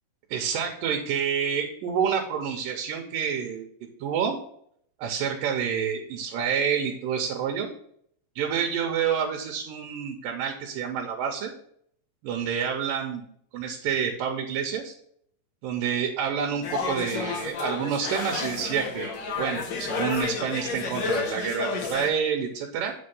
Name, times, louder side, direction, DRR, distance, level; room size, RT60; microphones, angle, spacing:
voice 1, 0.3-3.7 4.0-4.4 5.0-7.7 8.4-11.5 12.2-13.2 13.5-14.9 15.6-22.9, right 7 dB, 85° right, 2 dB, 2.6 m, -28 dB
sound 1, 16.6-22.1, left 4 dB, 85° left, 1.0 m, -31 dB
8.1 x 4.4 x 5.4 m, 0.66 s
omnidirectional pair, 3.8 m